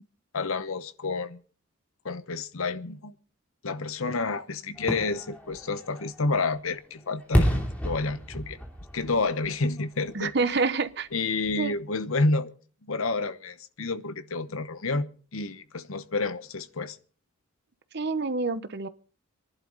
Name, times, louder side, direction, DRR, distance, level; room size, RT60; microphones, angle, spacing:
voice 1, 0.3-1.4 2.0-3.1 3.6-8.6 8.9-10.3 11.1-12.5 12.8-17.0, left 3 dB, 70° left, 1.0 m, -29 dB
Fireworks, 4.8-10.6 11.0-11.1, equal, 5° left, 2.7 m, -30 dB
voice 2, 10.1-11.1 11.6-11.7 17.9-18.9, right 4 dB, 50° right, 0.9 m, -27 dB
25.5 x 11.5 x 3.9 m
head